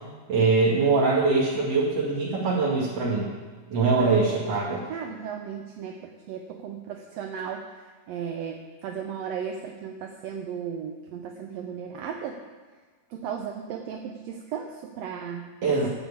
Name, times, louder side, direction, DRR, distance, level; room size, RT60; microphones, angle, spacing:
voice 1, 0.3-3.3 3.7-4.8 15.6-15.9, right 4 dB, 50° right, -7 dB, 3.0 m, -23 dB
voice 2, 4.0-12.4 13.1-15.9, right 7 dB, 70° right, 3 dB, 1.6 m, -36 dB
12.5 x 7.7 x 8.6 m, 1.4 s
omnidirectional pair, 3.8 m